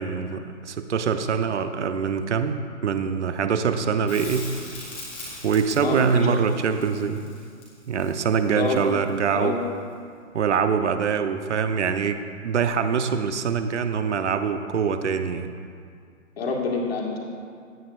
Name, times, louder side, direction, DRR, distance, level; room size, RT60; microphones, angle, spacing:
voice 1, 0.0-4.5 5.4-7.2 7.9-9.6 10.3-15.5, right 6 dB, 60° right, 9 dB, 0.8 m, -24 dB
Crackle, 4.1-9.2 11.9-12.0, left 2 dB, 10° left, 0.9 m, -41 dB
voice 2, 5.8-6.8 8.5-8.8 9.3-9.6 16.4-17.2, left 3 dB, 50° left, -1 dB, 1.8 m, -27 dB
17.0 x 9.1 x 2.5 m, 2.2 s
hypercardioid pair, 175°, 40 cm